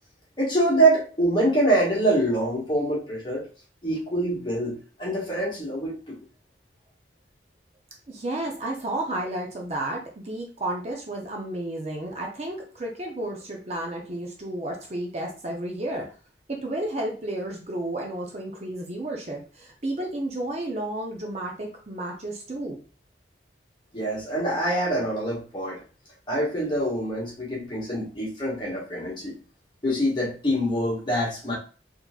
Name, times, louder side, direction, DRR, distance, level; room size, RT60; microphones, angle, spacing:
voice 1, 0.4-3.4 3.8-6.2 23.9-25.8 26.3-29.4 29.8-31.5, right 1 dB, 25° left, -5 dB, 1.5 m, -25 dB
voice 2, 8.1-16.1 16.5-22.8, right 1 dB, 35° right, 0 dB, 0.6 m, -32 dB
4.1 x 2.8 x 2.3 m, 0.37 s
head